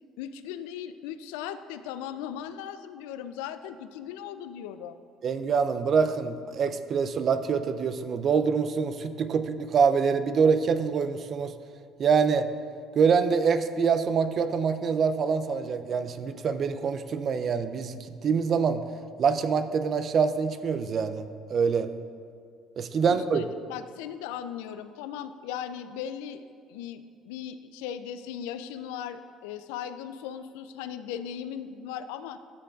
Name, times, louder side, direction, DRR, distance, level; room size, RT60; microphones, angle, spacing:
voice 1, 0.2-5.0 23.0-23.4 23.7-32.4, left 9 dB, 80° left, 11 dB, 0.3 m, -38 dB
voice 2, 5.2-11.5 12.0-12.5 13.0-18.8 19.2-21.9 22.8-23.4, right 6 dB, 50° right, 10 dB, 0.4 m, -25 dB
12.5 x 6.6 x 2.4 m, 2.2 s
hypercardioid pair, 60°, 0 cm